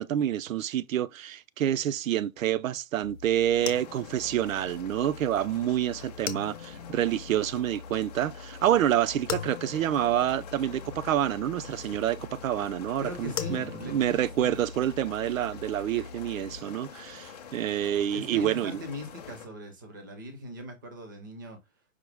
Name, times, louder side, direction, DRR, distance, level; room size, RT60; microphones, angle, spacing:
voice 1, 0.0-18.8, right 11 dB, 75° right, 0.5 m, -28 dB
sound 1, 3.0-16.6, left 7 dB, 65° left, 0.7 m, -42 dB
sound 2, 3.5-19.5, left 7 dB, 30° left, 0.5 m, -47 dB
voice 2, 13.0-14.6 18.1-21.6, left 1 dB, 15° right, 0.4 m, -40 dB
4.9 x 2.1 x 3.3 m
hypercardioid pair, 150°, 40 cm